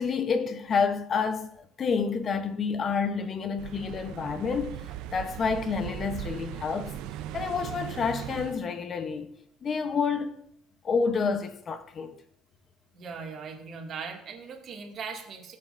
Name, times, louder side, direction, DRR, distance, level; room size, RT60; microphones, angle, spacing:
voice 1, 0.0-6.9 7.3-9.3 9.6-10.4 10.8-12.2, left 5 dB, 35° left, 0.7 m, -29 dB
sound 1, 3.6-8.6, right 11 dB, 80° right, 0.5 m, -38 dB
voice 2, 12.9-15.6, right 5 dB, 50° right, 2.1 m, -39 dB
19.0 x 7.6 x 2.5 m
cardioid pair, 130°, 0 cm